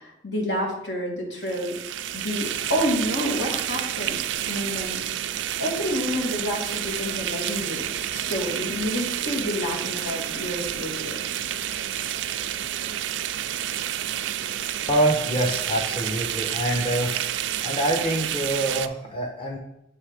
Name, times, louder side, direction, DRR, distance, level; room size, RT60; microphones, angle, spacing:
voice 1, 0.0-1.8 2.1-4.2 4.4-5.0 5.6-7.8 8.1-11.2, equal, 75° left, -1 dB, 1.7 m, -29 dB
sound 1, 1.4-18.9, right 11 dB, 85° right, 0.3 m, -29 dB
voice 2, 14.9-17.2 17.6-19.6, right 1 dB, 30° left, 0 dB, 0.9 m, -25 dB
7.5 x 3.3 x 4.9 m, 0.80 s
head